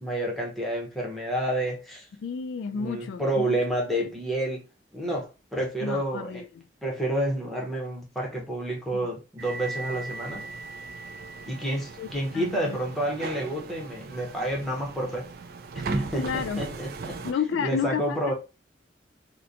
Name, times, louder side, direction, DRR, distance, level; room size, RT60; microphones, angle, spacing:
voice 1, 0.0-2.1 2.7-4.6 4.9-6.4 6.8-10.5 11.5-15.3 15.9-17.1 17.6-18.3, right 1 dB, ahead, 0.7 m, -29 dB
voice 2, 2.2-3.6 4.0-4.1 5.8-6.6 8.9-9.1 12.0-12.1 12.3-12.8 16.2-16.6 17.2-18.2, left 6 dB, 85° left, 0.3 m, -31 dB
sound 1, 9.4-17.3, right 3 dB, 55° right, 0.3 m, -38 dB
2.8 x 2.1 x 2.5 m
head